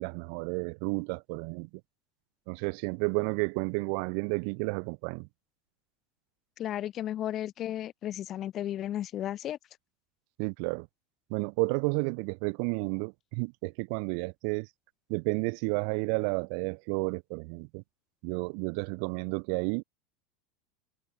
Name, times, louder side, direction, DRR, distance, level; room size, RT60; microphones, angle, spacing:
voice 1, 0.0-1.7 2.5-5.3 10.4-10.9 11.3-14.7 15.1-17.8 18.2-19.8, right 40 dB or more, 55° right, 0.7 m, -31 dB
voice 2, 6.6-9.6, left 12 dB, 30° left, 1.3 m, -34 dB
supercardioid pair, 165°, 0 cm